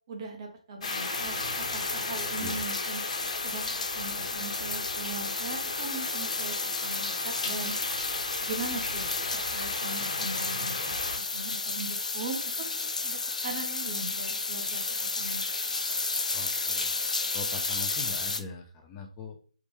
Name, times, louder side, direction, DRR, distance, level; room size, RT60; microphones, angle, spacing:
voice 1, 0.1-3.0 3.4-7.7 8.4-9.1 9.3-11.0 11.3-14.8 15.2-15.4, right 3 dB, 40° right, 2 dB, 0.9 m, -40 dB
sound 1, 0.8-18.4, left 3 dB, 75° left, 0.4 m, -32 dB
sound 2, 0.8-11.2, left 3 dB, 50° left, 1.3 m, -36 dB
voice 2, 16.3-16.9 17.3-19.4, left 4 dB, 15° left, 3 dB, 0.4 m, -41 dB
3.4 x 2.5 x 3.3 m, 0.41 s
figure-of-eight pair, 145°, 4 cm